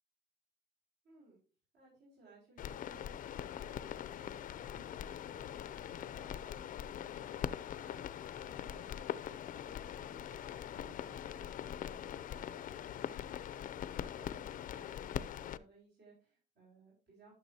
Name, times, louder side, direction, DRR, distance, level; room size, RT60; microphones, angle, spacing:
voice 1, 1.0-1.4 1.7-8.0 8.3-12.8 13.1-17.3, right 3 dB, 65° right, -5 dB, 5.2 m, -62 dB
sound 1, 2.6-15.6, left 10 dB, 45° left, 0.5 m, -42 dB
12.5 x 6.8 x 2.7 m, 0.38 s
cardioid pair, 140°, 19 cm